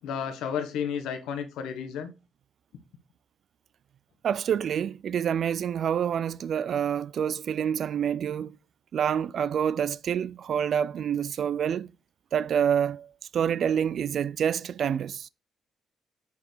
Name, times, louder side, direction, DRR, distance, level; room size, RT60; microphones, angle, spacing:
voice 1, 0.0-2.1, left 7 dB, 90° left, 1.1 m, -32 dB
voice 2, 4.2-8.6 8.9-11.9 12.3-15.3, right 8 dB, 60° right, 0.3 m, -27 dB
5.5 x 4.7 x 4.8 m
cardioid pair, 90°, 0 cm